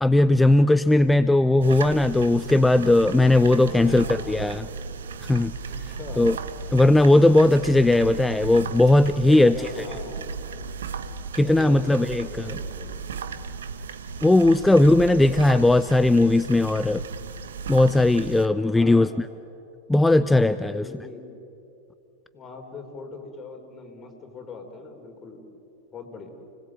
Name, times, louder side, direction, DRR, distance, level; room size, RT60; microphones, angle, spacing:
voice 1, 0.0-4.7 5.2-5.5 6.2-6.4 6.7-9.6 11.3-12.5 14.2-17.0 17.7-19.1 19.9-20.8, left 2 dB, 5° left, 14 dB, 0.5 m, -18 dB
sound 1, 1.6-18.5, right 5 dB, 65° right, 1.1 m, -35 dB
voice 2, 3.4-4.5 5.7-6.4 9.0-10.3 11.4-13.0 14.7-15.5 18.6-19.1 20.6-21.3 22.3-25.4 25.9-26.3, left 4 dB, 25° left, 4 dB, 3.9 m, -41 dB
30.0 x 19.0 x 7.7 m, 2.7 s
figure-of-eight pair, 90°, 0 cm